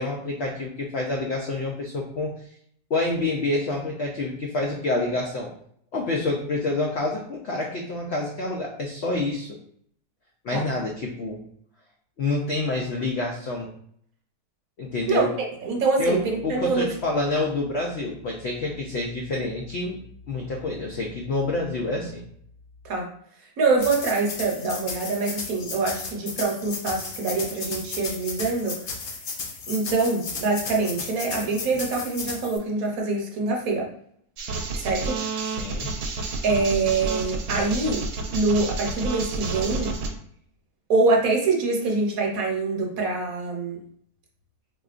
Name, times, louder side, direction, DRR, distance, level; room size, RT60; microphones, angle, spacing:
voice 1, 0.0-2.3 2.9-5.5 5.9-9.6 10.4-11.4 12.2-13.7 14.8-15.3 16.0-20.0 20.3-22.2 35.6-35.9, left 2 dB, 80° left, -1 dB, 0.5 m, -27 dB
voice 2, 15.1-16.9 22.8-23.1 23.6-28.7 29.7-33.9 34.7-35.2 36.4-38.0 38.3-39.9 40.9-43.8, right 3 dB, 65° right, 0 dB, 1.1 m, -25 dB
sound 1, 23.8-32.6, left 4 dB, 60° left, 0.9 m, -34 dB
sound 2, 34.4-40.1, right 3 dB, 90° right, 1.2 m, -30 dB
3.7 x 2.8 x 2.4 m, 0.65 s
omnidirectional pair, 1.7 m